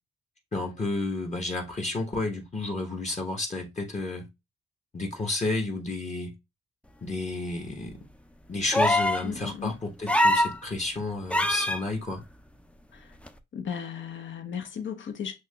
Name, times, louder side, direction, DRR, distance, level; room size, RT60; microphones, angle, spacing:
voice 1, 0.5-4.3 4.9-6.3 7.0-8.1 8.5-12.2, left 2 dB, 35° left, 1.0 m, -31 dB
sound 1, 8.7-9.3 10.1-10.6 11.3-11.8 13.3-13.4, left 1 dB, 5° left, 0.4 m, -22 dB
voice 2, 9.2-9.7 13.5-15.3, left 7 dB, 65° left, 0.8 m, -35 dB
6.1 x 2.9 x 2.2 m
cardioid pair, 60°, 21 cm